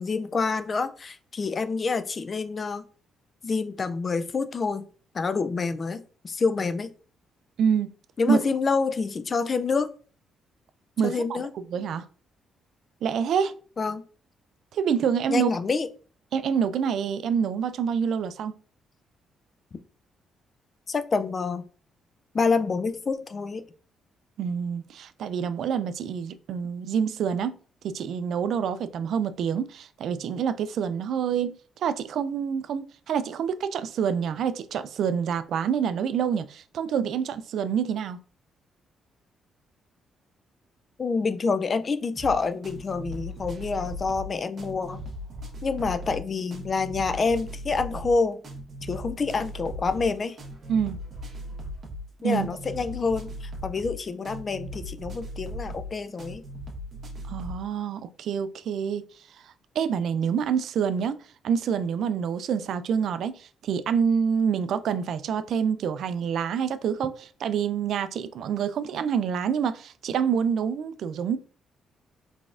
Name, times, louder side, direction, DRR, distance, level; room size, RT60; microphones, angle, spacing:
voice 1, 0.0-2.8 3.4-4.8 5.1-6.9 8.2-9.9 11.0-11.5 13.8-14.0 15.3-15.9 20.9-21.6 22.3-23.6 41.0-45.0 45.6-48.4 48.8-50.4 52.2-56.4, left 4 dB, 40° left, 0.4 m, -27 dB
voice 2, 7.6-7.9 8.3-8.4 11.0-11.4 11.7-12.1 13.0-13.5 14.7-15.5 16.3-18.5 24.4-27.6 27.8-38.2 50.7-51.0 52.2-52.5 57.3-59.0 59.4-61.2 61.4-71.4, right 7 dB, 70° right, 0.3 m, -27 dB
sound 1, 42.2-57.6, equal, 40° right, 1.2 m, -38 dB
3.9 x 3.4 x 2.5 m
cardioid pair, 90°, 0 cm